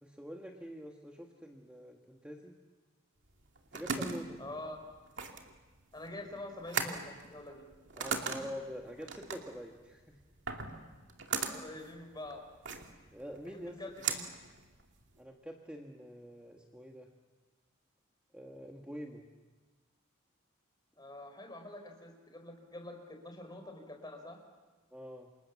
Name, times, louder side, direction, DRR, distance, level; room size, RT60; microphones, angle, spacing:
voice 1, 0.0-2.6 3.7-4.6 8.0-10.2 13.1-13.8 15.2-17.1 18.3-19.3 24.9-25.3, equal, 5° right, 1 dB, 1.6 m, -46 dB
sound 1, 3.3-15.2, right 5 dB, 60° right, 2.6 m, -39 dB
voice 2, 4.4-4.8 5.9-7.7 11.5-12.4 13.5-14.3 21.0-24.4, left 1 dB, 20° left, 4 dB, 4.5 m, -46 dB
29.0 x 27.0 x 7.2 m, 1.3 s
head